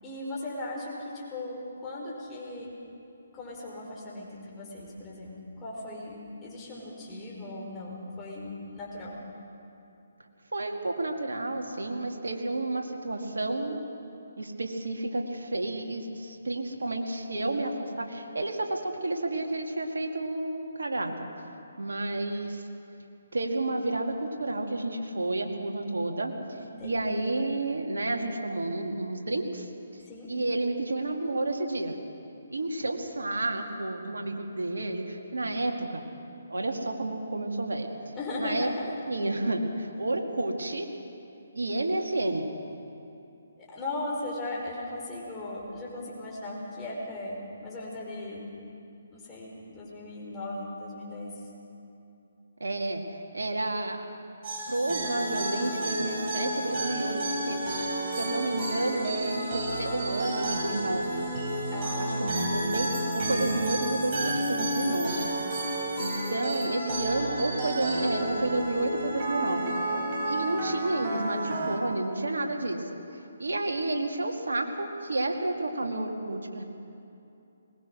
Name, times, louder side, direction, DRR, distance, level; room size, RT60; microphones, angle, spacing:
voice 1, 0.0-2.7 3.3-9.1 26.6-27.2 30.0-30.3 38.1-38.9 43.6-48.4 49.1-51.5 61.7-62.5, left 2 dB, 15° left, -5 dB, 5.1 m, -38 dB
voice 2, 10.5-13.8 14.4-21.3 21.8-22.6 23.3-26.3 26.8-29.7 30.3-32.0 32.5-36.0 36.5-37.9 38.4-38.7 39.1-40.9 41.5-42.5 52.6-53.0 53.3-54.0 54.7-57.7 58.0-61.2 62.0-65.3 66.0-72.8 73.4-76.6, right 2 dB, 80° right, 2 dB, 2.3 m, -31 dB
sound 1, 54.4-71.8, right 1 dB, 35° right, 4.5 m, -31 dB
21.5 x 19.5 x 6.3 m, 2.7 s
figure-of-eight pair, 145°, 0 cm